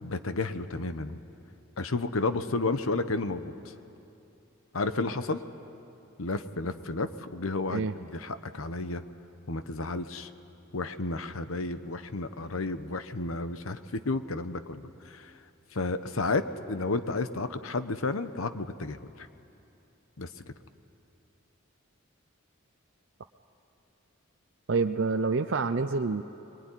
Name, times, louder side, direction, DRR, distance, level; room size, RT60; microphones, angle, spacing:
voice 1, 0.0-1.2 1.8-3.5 4.7-5.4 6.2-9.0 9.5-10.3 10.7-15.2 15.7-19.3 20.2-20.3, left 3 dB, 90° left, 11 dB, 1.0 m, -32 dB
voice 2, 24.7-26.2, right 4 dB, 60° right, 6 dB, 0.6 m, -27 dB
22.5 x 22.5 x 9.9 m, 2.8 s
head